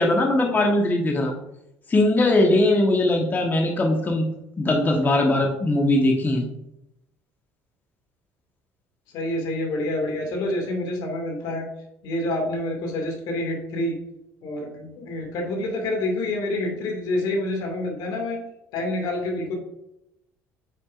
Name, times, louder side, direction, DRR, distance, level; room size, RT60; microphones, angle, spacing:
voice 1, 0.0-1.3 1.9-4.2 4.6-6.5, left 1 dB, 25° left, 1 dB, 1.3 m, -20 dB
voice 2, 9.1-11.7 12.0-14.0 14.4-18.4 18.7-19.5, left 1 dB, 70° left, 2 dB, 2.2 m, -27 dB
7.8 x 6.0 x 2.5 m, 0.85 s
hypercardioid pair, 75°, 7 cm